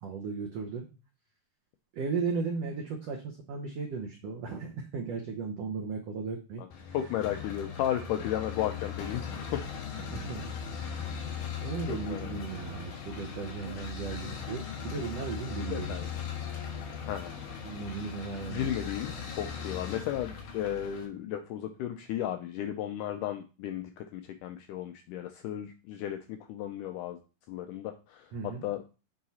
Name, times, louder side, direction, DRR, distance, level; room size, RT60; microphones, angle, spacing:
voice 1, 0.0-0.8 1.9-6.6 10.0-10.5 10.8-16.0 17.6-18.7 28.3-28.6, right 5 dB, 85° right, 1 dB, 1.4 m, -36 dB
sound 1, 6.7-21.1, left 6 dB, 65° left, 2.7 m, -39 dB
voice 2, 6.9-9.2 9.5-9.6 11.9-12.3 13.7-13.8 15.7-16.1 17.1-17.3 18.5-27.2 27.5-28.8, left 11 dB, 80° left, 6 dB, 1.9 m, -34 dB
7.7 x 3.9 x 4.1 m, 0.32 s
omnidirectional pair, 4.1 m